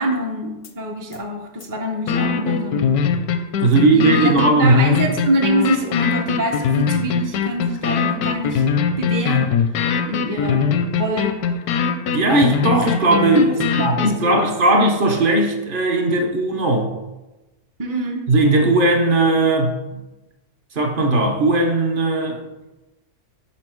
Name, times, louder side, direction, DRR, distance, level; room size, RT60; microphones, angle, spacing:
voice 1, 0.0-2.9 3.8-8.6 9.0-9.5 10.1-10.7 11.0-11.4 13.5-14.8 17.8-18.2, right 1 dB, 30° right, 0 dB, 0.4 m, -25 dB
sound 1, 0.6-0.7 1.1-1.2 1.6-1.7 2.1-14.1, left 6 dB, 80° left, 1.1 m, -21 dB
voice 2, 3.6-4.9 12.1-16.9 18.3-20.0 20.7-22.5, right 2 dB, 45° right, 3 dB, 0.7 m, -17 dB
5.5 x 4.4 x 4.4 m, 1.1 s
omnidirectional pair, 1.6 m